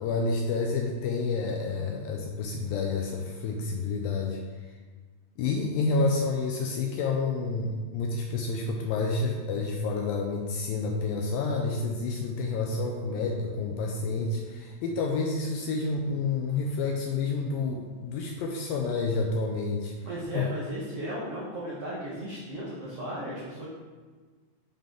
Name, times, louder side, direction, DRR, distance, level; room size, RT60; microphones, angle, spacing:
voice 1, 0.0-4.4 5.4-19.9 20.3-20.5, left 3 dB, 80° left, 1 dB, 2.1 m, -29 dB
voice 2, 20.0-23.7, right 1 dB, 80° right, -7 dB, 1.3 m, -35 dB
7.1 x 5.7 x 3.7 m, 1.4 s
omnidirectional pair, 4.6 m